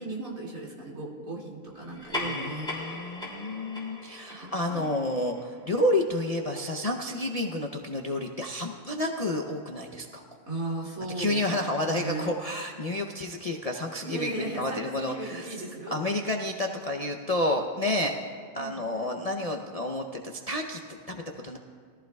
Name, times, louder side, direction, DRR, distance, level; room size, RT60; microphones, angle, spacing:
voice 1, 0.0-3.0 4.3-5.0 10.5-12.3 14.0-16.0 18.6-18.8, right 2 dB, 75° right, -3 dB, 2.8 m, -37 dB
sound 1, 1.9-6.7, left 2 dB, 5° left, 3.2 m, -39 dB
voice 2, 2.2-10.2 11.2-15.6 15.9-18.1 18.5-21.6, left 1 dB, 40° left, 2 dB, 0.5 m, -30 dB
22.0 x 14.5 x 2.3 m, 2.2 s
omnidirectional pair, 1.5 m